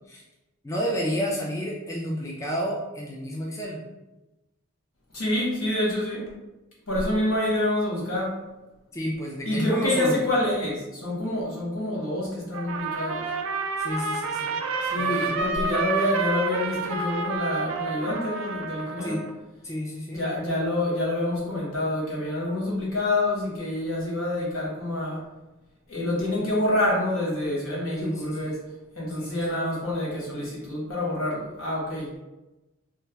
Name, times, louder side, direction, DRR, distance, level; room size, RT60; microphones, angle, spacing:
voice 1, 0.6-3.8 8.9-10.1 13.8-14.6 14.9-15.3 19.0-19.2 19.6-20.2 28.0-28.5 29.1-29.7, equal, 15° left, -2 dB, 0.3 m, -31 dB
voice 2, 5.1-6.3 6.9-8.4 9.4-13.2 14.9-19.2 20.1-25.2 25.9-28.6 28.9-32.1, left 1 dB, 75° left, -5 dB, 1.3 m, -27 dB
Trumpet, 12.5-19.3, right 4 dB, 75° right, 0.4 m, -29 dB
3.3 x 2.0 x 3.3 m, 1.0 s
head